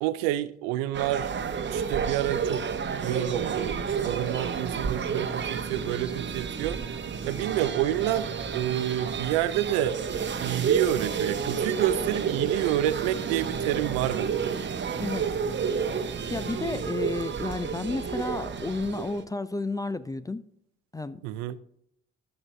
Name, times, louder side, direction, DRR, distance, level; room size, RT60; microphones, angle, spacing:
voice 1, 0.0-1.3 1.7-2.6 2.9-6.8 7.3-10.0 10.4-14.6 21.2-21.6, right 13 dB, 75° right, 0.5 m, -28 dB
sound 1, 0.9-19.2, right 6 dB, 35° right, 0.9 m, -30 dB
voice 2, 15.0-15.3 16.0-20.5 20.9-21.2, left 3 dB, 10° left, 0.4 m, -32 dB
11.5 x 6.0 x 3.2 m
hypercardioid pair, 45°, 32 cm